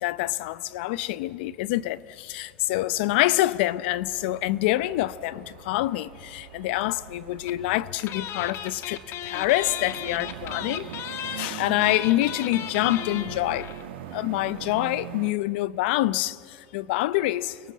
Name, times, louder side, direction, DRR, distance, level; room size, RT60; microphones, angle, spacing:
voice 1, 0.0-13.7 14.1-17.6, left 16 dB, 70° left, 0.7 m, -26 dB
sound 1, 4.0-15.3, right 11 dB, 80° right, 1.5 m, -42 dB
sound 2, 7.5-7.7 8.0-13.9 14.1-14.2 14.4-14.6, left 10 dB, 45° left, 1.5 m, -36 dB
29.5 x 22.5 x 7.5 m
supercardioid pair, 120°, 6 cm